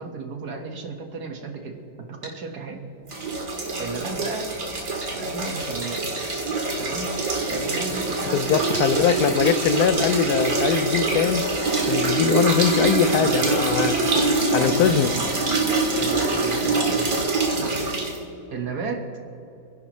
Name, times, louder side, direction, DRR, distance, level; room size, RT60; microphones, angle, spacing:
voice 1, 0.0-2.8 3.8-4.5 5.1-6.1 6.8-7.1 7.5-9.4 13.2-14.3 14.6-15.3 16.0-17.2 17.6-17.9 18.5-19.1, right 4 dB, 85° right, 3 dB, 2.1 m, -34 dB
sound 1, 2.2-2.4 5.0-5.2 5.8-6.3 9.1-9.2 10.0-10.2 10.7-10.8, right 1 dB, 35° right, 3.8 m, -39 dB
sound 2, 3.1-18.2, right 3 dB, 70° right, 2.3 m, -24 dB
voice 2, 8.3-11.5 11.9-14.0 14.5-15.1, left 9 dB, 85° left, 13 dB, 1.1 m, -22 dB
30.0 x 11.0 x 3.2 m, 2.8 s
omnidirectional pair, 1.6 m